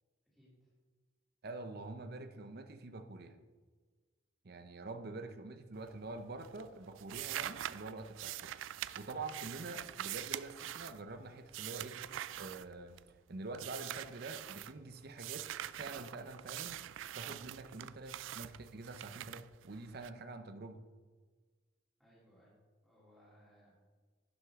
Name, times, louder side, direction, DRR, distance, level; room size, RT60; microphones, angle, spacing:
voice 1, 0.3-0.7 22.0-22.5 22.8-23.7, equal, ahead, -9 dB, 3.0 m, -64 dB
voice 2, 1.4-3.4 4.4-16.8 17.1-20.8, right 3 dB, 55° right, 8 dB, 0.7 m, -46 dB
sound 1, 5.7-6.2 6.4-13.2 13.5-14.7 15.2-20.1, right 12 dB, 90° right, 0.3 m, -44 dB
11.5 x 6.5 x 3.6 m, 1.4 s
head